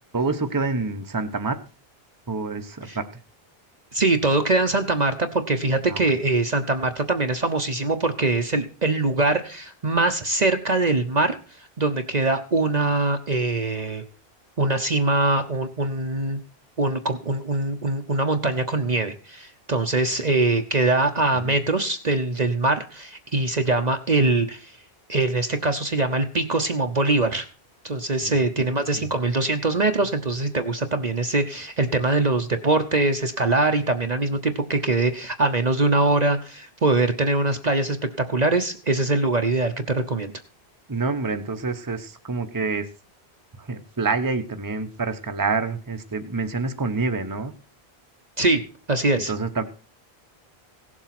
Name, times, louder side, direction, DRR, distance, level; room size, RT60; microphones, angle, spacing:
voice 1, 0.1-1.6 2.3-3.0 5.9-6.0 21.3-21.6 28.2-28.4 28.9-29.1 40.9-42.9 43.6-47.5 49.3-49.6, right 3 dB, 20° right, 7 dB, 1.0 m, -27 dB
voice 2, 3.9-11.4 11.8-14.0 14.6-16.4 16.8-24.7 25.1-27.5 27.8-40.3 48.4-48.6 48.9-49.3, right 2 dB, 40° right, 6 dB, 1.0 m, -23 dB
17.0 x 7.4 x 5.9 m, 0.36 s
omnidirectional pair, 1.1 m